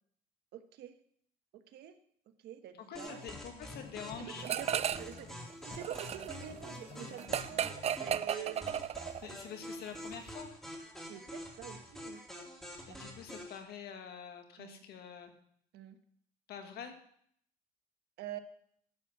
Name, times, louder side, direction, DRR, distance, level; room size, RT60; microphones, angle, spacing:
voice 1, 0.5-0.9 1.7-2.0 2.4-3.2 4.2-8.9 11.1-12.2 12.9-13.0 14.6-14.8 15.7-16.0 18.2-18.4, right 10 dB, 75° right, 8 dB, 1.2 m, -46 dB
voice 2, 2.9-4.4 9.2-10.5 12.9-15.3 16.5-17.0, left 7 dB, 70° left, 6 dB, 2.0 m, -46 dB
sound 1, 3.0-13.6, equal, ahead, 2.7 m, -47 dB
sound 2, 3.1-8.3, left 6 dB, 35° left, 0.7 m, -53 dB
sound 3, 4.4-5.2 5.5-9.3, right 9 dB, 40° right, 0.4 m, -35 dB
11.5 x 7.8 x 7.2 m, 0.66 s
cardioid pair, 110°, 17 cm